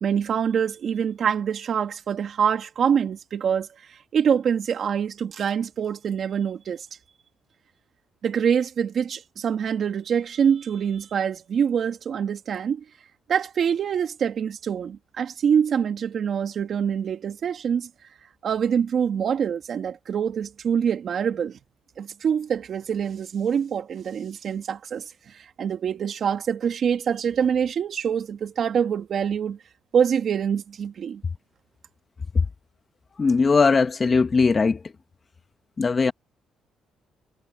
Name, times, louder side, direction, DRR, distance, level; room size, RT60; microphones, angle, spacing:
voice 1, 0.0-6.9 8.2-12.8 13.3-17.9 18.4-21.6 22.0-29.6 29.9-31.2, right 7 dB, 55° right, 2.3 m, -25 dB
voice 2, 33.2-34.8 35.8-36.1, left 4 dB, 30° left, 1.3 m, -19 dB
cardioid pair, 100°, 0 cm